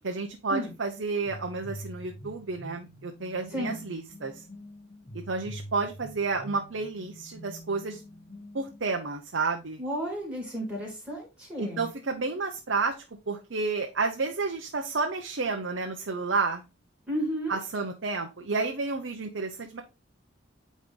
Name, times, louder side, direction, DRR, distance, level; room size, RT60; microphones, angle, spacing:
voice 1, 0.0-4.4 5.1-8.0 8.5-9.8 11.6-12.9 13.3-16.6 17.5-19.8, right 4 dB, 70° right, 4 dB, 0.8 m, -31 dB
sound 1, 1.2-8.9, equal, 35° left, 1.1 m, -45 dB
voice 2, 9.8-11.9 17.1-17.6, equal, 5° right, -3 dB, 3.4 m, -32 dB
9.0 x 3.1 x 3.7 m, 0.28 s
head